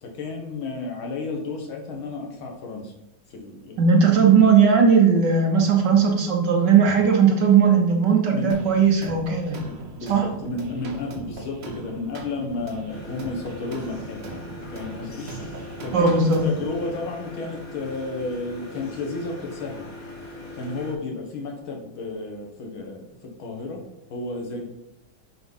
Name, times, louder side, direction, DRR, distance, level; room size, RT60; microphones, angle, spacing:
voice 1, 0.0-2.9 3.3-3.8 8.3-8.5 9.7-14.4 14.7-19.9 20.5-23.8 24.1-24.7, left 3 dB, 80° left, 1 dB, 2.3 m, -32 dB
voice 2, 3.8-9.6 10.1-10.2 15.9-16.4, right 6 dB, 65° right, 1 dB, 1.6 m, -17 dB
sound 1, 8.5-16.9, right 3 dB, 45° right, 0.9 m, -39 dB
sound 2, 12.9-20.9, left 2 dB, 45° left, 1.9 m, -40 dB
7.2 x 4.1 x 5.4 m, 0.82 s
omnidirectional pair, 2.2 m